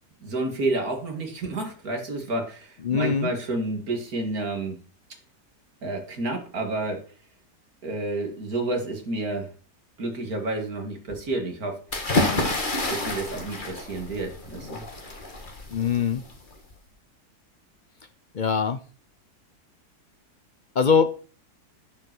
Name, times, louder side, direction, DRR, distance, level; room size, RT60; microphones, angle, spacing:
voice 1, 0.2-4.8 5.8-7.0 7.8-9.5 10.0-11.8 12.9-14.8, right 2 dB, 65° right, 3 dB, 2.8 m, -30 dB
voice 2, 2.8-3.3 15.7-16.2 18.3-18.8 20.8-21.1, left 6 dB, 55° left, 11 dB, 0.5 m, -22 dB
sound 1, 11.9-16.7, left 2 dB, 30° left, 1.9 m, -29 dB
10.5 x 5.5 x 6.0 m, 0.38 s
omnidirectional pair, 1.7 m